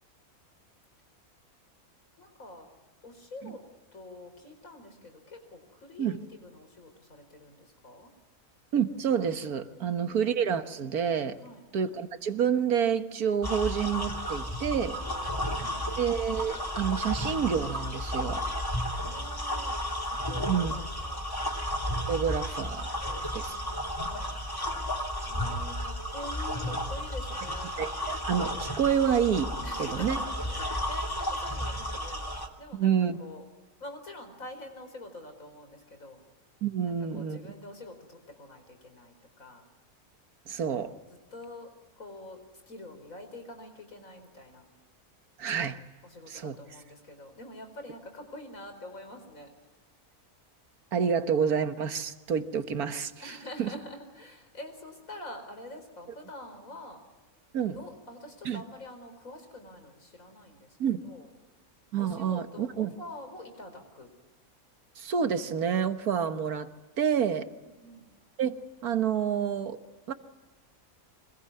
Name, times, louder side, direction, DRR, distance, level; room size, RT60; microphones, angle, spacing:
voice 1, 2.2-2.7 3.0-3.6 3.9-8.1 11.4-11.7 15.0-16.1 18.9-21.6 23.0-24.4 25.2-27.7 29.6-32.3 32.6-33.4 33.8-36.2 37.1-39.6 41.3-41.7 42.0-44.6 46.0-49.5 53.2-57.0 57.7-60.8 61.0-61.3 62.0-64.1 67.6-68.1, left 1 dB, 65° left, 6 dB, 5.0 m, -46 dB
voice 2, 8.7-11.4 11.7-15.0 16.0-18.4 20.5-20.8 22.1-22.9 23.3-23.5 27.8-30.2 32.7-33.2 36.6-37.4 40.5-40.9 45.4-45.8 46.3-46.6 50.9-53.7 57.5-57.8 58.5-58.6 60.8-61.0 61.9-62.9 65.0-66.7 67.0-67.5 68.4-69.8 70.1-70.2, right 7 dB, 80° right, 9 dB, 1.9 m, -28 dB
sound 1, 13.4-32.5, equal, 15° left, 2.6 m, -33 dB
26.0 x 21.5 x 9.7 m, 1.3 s
omnidirectional pair, 1.6 m